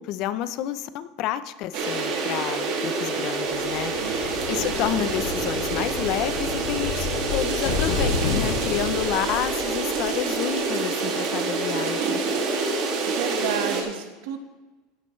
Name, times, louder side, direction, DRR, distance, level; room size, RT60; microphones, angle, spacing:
voice 1, 0.0-12.2, left 11 dB, 45° left, 13 dB, 0.6 m, -30 dB
sound 1, 1.7-13.8, right 3 dB, 50° right, 2.3 m, -27 dB
sound 2, 3.5-10.3, left 6 dB, 70° left, 1.5 m, -31 dB
voice 2, 13.1-14.4, right 9 dB, 70° right, 7 dB, 1.4 m, -31 dB
16.0 x 10.0 x 3.2 m, 1.2 s
supercardioid pair, 165°, 0 cm